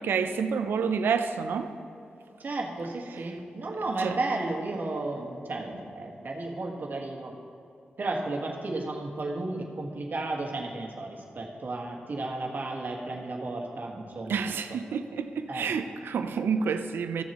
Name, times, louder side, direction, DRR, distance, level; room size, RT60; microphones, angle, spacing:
voice 1, 0.0-1.7 4.0-4.2 14.3-17.2, right 6 dB, 85° right, 9 dB, 0.5 m, -28 dB
voice 2, 2.4-7.3 8.0-14.5 15.5-15.8, right 2 dB, 60° right, 0 dB, 1.6 m, -33 dB
15.0 x 7.2 x 3.1 m, 2.7 s
supercardioid pair, 40°, 4 cm